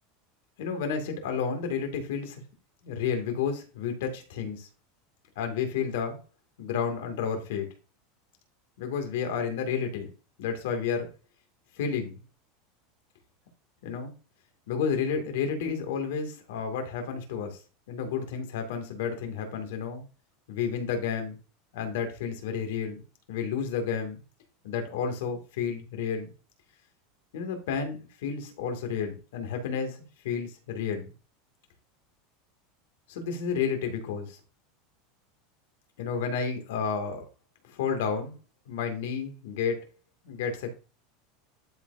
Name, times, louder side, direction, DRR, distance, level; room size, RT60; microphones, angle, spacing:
voice 1, 0.6-2.4 2.8-4.7 5.4-6.2 6.6-7.7 8.8-10.1 10.4-11.1 11.8-12.2 13.8-14.1 14.7-17.6 17.9-20.0 20.5-21.4 21.7-23.0 23.3-24.2 24.6-26.3 27.3-31.1 33.1-34.4 36.0-37.2 37.6-38.3 38.7-39.8 40.2-40.7, left 6 dB, 80° left, 4 dB, 2.3 m, -31 dB
12.0 x 4.5 x 2.7 m, 0.33 s
supercardioid pair, 125°, 0 cm